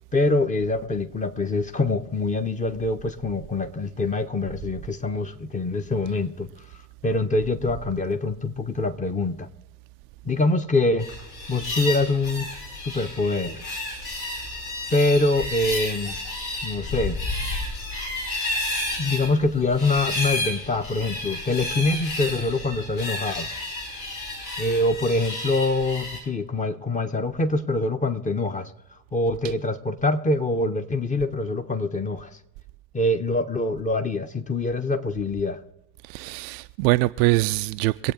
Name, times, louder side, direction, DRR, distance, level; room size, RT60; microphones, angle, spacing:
voice 1, 0.1-6.5 7.0-9.5 10.2-11.1 11.5-12.5 12.8-13.6 14.9-16.2 16.6-17.2 19.0-23.5 24.6-28.7 29.1-32.4 32.9-35.6, left 2 dB, 20° left, 1.3 m, -24 dB
sound 1, 11.0-26.2, left 2 dB, 60° left, 5.0 m, -31 dB
voice 2, 36.1-38.1, right 19 dB, 50° right, 0.5 m, -23 dB
23.5 x 8.5 x 4.0 m
figure-of-eight pair, 65°, 41 cm